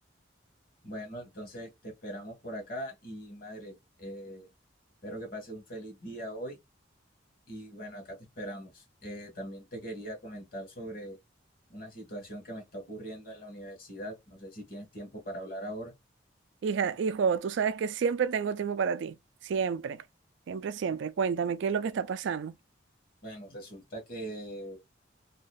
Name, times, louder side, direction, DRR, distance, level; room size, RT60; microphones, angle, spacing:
voice 1, 0.8-4.5 5.0-6.6 7.5-11.2 11.7-15.9 23.2-24.8, right 1 dB, 45° left, 1.3 m, -41 dB
voice 2, 16.6-19.2 19.4-20.0 20.5-22.5, right 6 dB, 70° right, 0.3 m, -29 dB
2.8 x 2.5 x 2.2 m
head